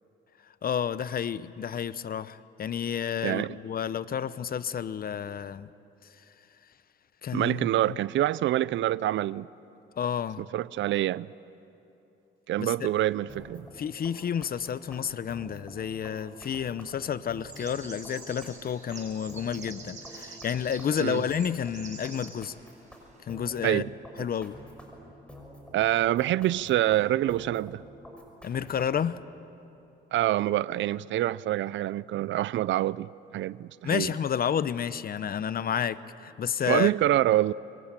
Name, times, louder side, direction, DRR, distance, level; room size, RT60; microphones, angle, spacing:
voice 1, 0.6-5.7 7.2-8.0 10.0-10.4 12.6-12.9 13.8-22.5 23.3-23.8 24.2-24.6 28.4-29.2 33.8-36.9, left 8 dB, 50° left, 0.8 m, -30 dB
voice 2, 3.2-3.6 7.3-9.5 10.5-11.3 12.5-13.7 21.0-21.2 23.6-23.9 24.2-24.3 25.7-27.8 30.1-34.1 36.7-37.5, right 14 dB, 70° right, 0.5 m, -26 dB
sound 1, 13.3-29.2, equal, 5° left, 5.9 m, -48 dB
sound 2, 17.4-22.3, right 4 dB, 35° right, 5.8 m, -45 dB
25.0 x 24.0 x 9.1 m
cardioid pair, 90°, 20 cm